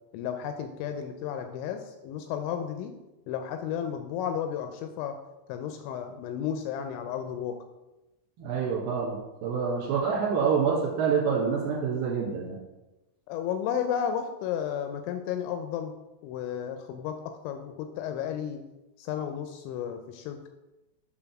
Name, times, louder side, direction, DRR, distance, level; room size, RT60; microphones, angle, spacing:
voice 1, 0.1-2.9 3.3-5.2 5.5-7.6 13.3-15.9 16.2-17.2 17.4-18.6 19.0-20.5, left 8 dB, 85° left, 6 dB, 2.8 m, -33 dB
voice 2, 8.4-12.6, right 6 dB, 60° right, -5 dB, 2.9 m, -27 dB
7.7 x 3.9 x 5.8 m, 1.0 s
omnidirectional pair, 5.6 m